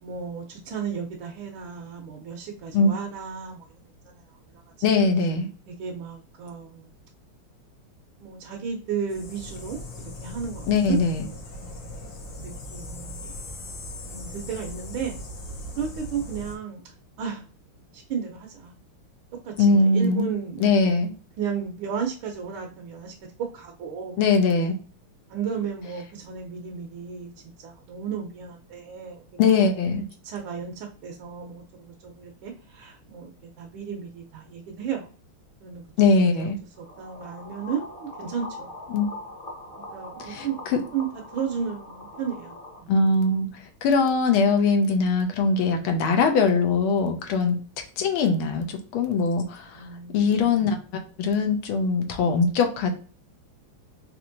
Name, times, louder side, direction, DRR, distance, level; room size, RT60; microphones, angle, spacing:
voice 1, 0.0-4.6 5.7-6.9 8.2-9.8 10.2-11.0 11.3-12.1 12.4-13.3 14.0-15.2 15.8-17.4 17.9-18.7 19.4-21.0 21.4-23.1 23.4-24.2 25.3-27.3 27.6-29.7 30.2-33.3 33.6-35.1 35.6-35.8 36.4-36.5 36.8-38.7 39.9-41.1 41.3-42.5 42.8-42.9 47.3-47.5 49.8-50.7, right 7 dB, 75° right, 1 dB, 1.5 m, -34 dB
voice 2, 4.8-5.5 10.7-11.2 19.6-20.3 20.6-21.1 24.2-24.7 29.4-30.1 36.0-36.6 38.9-39.1 40.2-40.8 42.9-43.5 43.8-47.6 48.0-49.8 50.1-50.8 51.2-52.9, left 4 dB, 80° left, 4 dB, 1.5 m, -21 dB
sound 1, 9.1-16.6, left 1 dB, 55° left, 1.1 m, -39 dB
sound 2, 36.7-42.8, left 2 dB, 35° left, 1.0 m, -42 dB
4.3 x 2.9 x 2.6 m, 0.39 s
omnidirectional pair, 2.3 m